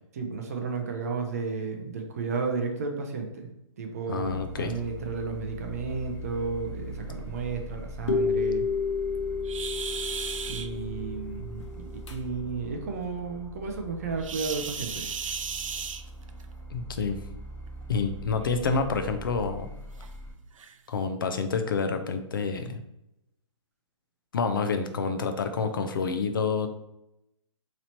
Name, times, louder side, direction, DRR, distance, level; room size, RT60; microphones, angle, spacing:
voice 1, 0.1-3.5 3.8-8.6 10.5-15.1, right 4 dB, 30° right, 3 dB, 0.4 m, -33 dB
voice 2, 4.1-4.7 16.7-17.2 17.9-19.7 20.9-22.8 24.3-26.7, left 5 dB, 40° left, 7 dB, 0.4 m, -28 dB
sound 1, 4.2-20.3, equal, 10° left, 1.0 m, -42 dB
sound 2, 8.1-12.1, left 5 dB, 65° left, 0.9 m, -30 dB
sound 3, 9.4-10.7 14.2-16.4 17.7-17.9 18.4-18.5 19.1-19.2 20.0-20.1 20.6-20.8, right 6 dB, 85° right, 0.4 m, -35 dB
3.0 x 2.7 x 4.2 m, 0.84 s
hypercardioid pair, 165°, 16 cm